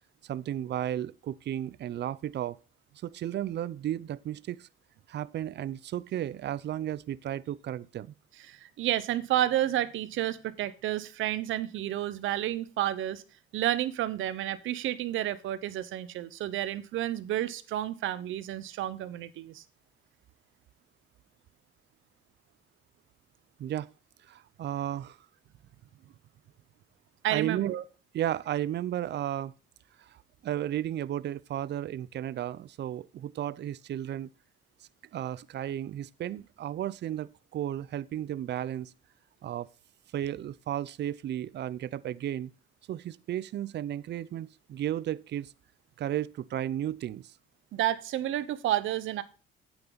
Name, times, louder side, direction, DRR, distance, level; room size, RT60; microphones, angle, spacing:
voice 1, 0.2-2.6 3.0-4.7 5.1-8.1 23.6-23.9 24.3-25.2 27.3-27.7 28.1-29.5 30.0-34.3 35.1-38.9 39.4-39.7 40.1-42.5 42.9-45.5 46.0-47.3, right 11 dB, 60° right, 0.6 m, -34 dB
voice 2, 8.5-13.2 13.5-19.6 27.2-27.8 47.7-49.2, right 13 dB, 85° right, 1.0 m, -30 dB
8.9 x 8.9 x 4.0 m
cardioid pair, 90°, 20 cm